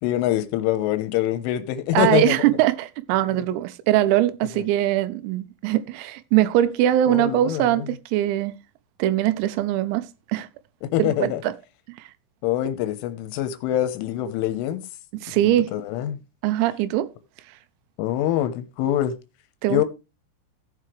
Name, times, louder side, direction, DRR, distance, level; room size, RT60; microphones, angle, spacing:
voice 1, 0.0-2.3 7.1-7.9 10.8-11.4 12.4-14.8 15.3-16.2 18.0-19.1 19.7-19.8, left 12 dB, 80° left, 3.2 m, -24 dB
voice 2, 1.9-8.6 9.0-10.5 11.0-11.5 12.0-12.1 15.2-15.7 16.4-17.1 19.6-19.9, right 13 dB, 85° right, 3.6 m, -22 dB
16.0 x 7.7 x 3.2 m
omnidirectional pair, 6.0 m